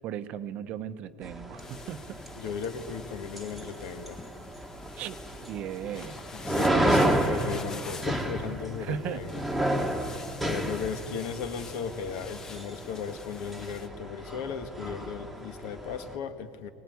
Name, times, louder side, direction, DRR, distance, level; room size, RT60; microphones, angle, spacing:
voice 1, 0.0-2.2 5.0-5.2 5.5-6.3 8.8-9.2, right 9 dB, 40° right, 11 dB, 0.9 m, -36 dB
sound 1, 1.2-16.2, right 1 dB, ahead, 1.5 m, -32 dB
sound 2, 1.6-13.9, left 4 dB, 15° left, 0.8 m, -46 dB
voice 2, 2.4-4.3 6.3-10.1 10.4-16.7, left 6 dB, 60° left, 9 dB, 1.7 m, -36 dB
23.5 x 18.5 x 9.4 m, 2.3 s
cardioid pair, 160°, 3 cm